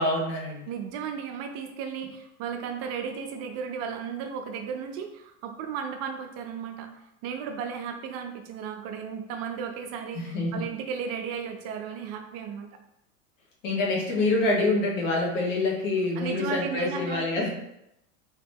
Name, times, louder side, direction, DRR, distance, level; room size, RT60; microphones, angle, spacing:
voice 1, 0.0-0.6 10.1-10.6 13.6-17.5, left 2 dB, 75° left, -3 dB, 1.4 m, -26 dB
voice 2, 0.7-6.9 7.2-12.7 16.2-17.5, right 7 dB, 40° right, 5 dB, 0.4 m, -34 dB
3.0 x 2.9 x 3.4 m, 0.82 s
supercardioid pair, 120°, 39 cm